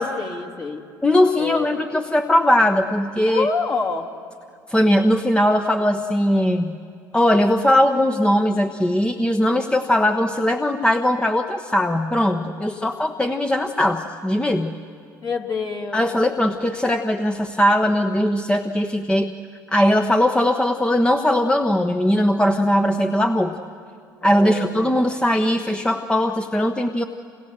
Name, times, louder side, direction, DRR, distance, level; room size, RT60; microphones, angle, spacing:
voice 1, 0.0-0.8 1.4-1.8 3.3-4.1 12.6-12.9 15.2-16.1 24.2-25.0, left 4 dB, 40° left, 2 dB, 3.1 m, -28 dB
voice 2, 1.0-3.5 4.7-6.7 7.1-14.7 15.9-19.3 19.7-23.6 24.2-27.0, left 1 dB, 10° left, 6 dB, 1.1 m, -19 dB
29.0 x 28.0 x 6.7 m, 2.2 s
hypercardioid pair, 65°, 10 cm